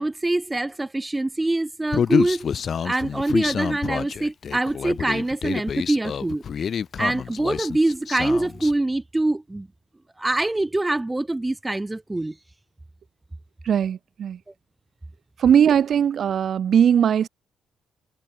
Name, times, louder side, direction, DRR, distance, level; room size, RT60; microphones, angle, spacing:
voice 1, 0.0-2.5 2.8-6.4 7.0-9.7 10.2-12.3, right 2 dB, 15° right, 0.8 m, -24 dB
Human voice, 1.9-8.7, left 7 dB, 50° left, 4.3 m, -27 dB
voice 2, 13.6-14.4 15.4-17.3, right 8 dB, 60° right, 1.7 m, -19 dB
cardioid pair, 90°, 0 cm